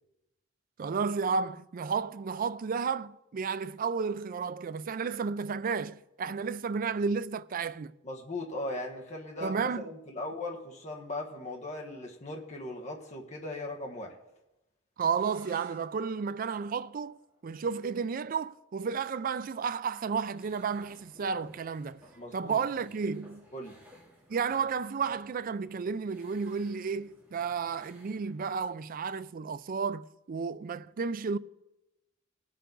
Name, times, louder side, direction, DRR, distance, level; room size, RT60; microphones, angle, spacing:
voice 1, 0.8-7.9 9.4-9.8 15.0-22.0 22.3-23.4 24.3-31.4, right 5 dB, 50° right, 0.4 m, -32 dB
voice 2, 8.0-14.2 22.2-22.6 23.5-23.8, left 2 dB, 40° left, 1.3 m, -38 dB
sound 1, 15.1-20.8, right 1 dB, 25° right, 4.1 m, -61 dB
sound 2, 20.3-28.6, equal, 10° right, 2.9 m, -59 dB
19.0 x 6.6 x 3.9 m
head